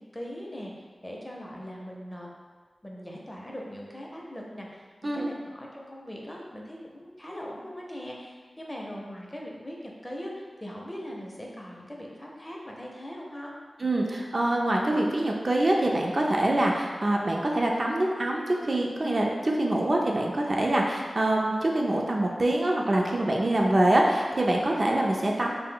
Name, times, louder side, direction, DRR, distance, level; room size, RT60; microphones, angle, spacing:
voice 1, 0.1-2.3 2.8-13.5, equal, 20° left, -2 dB, 0.5 m, -40 dB
voice 2, 13.8-25.5, right 1 dB, 50° right, -1 dB, 0.3 m, -25 dB
2.2 x 2.0 x 3.7 m, 1.5 s
wide cardioid pair, 60°, 0 cm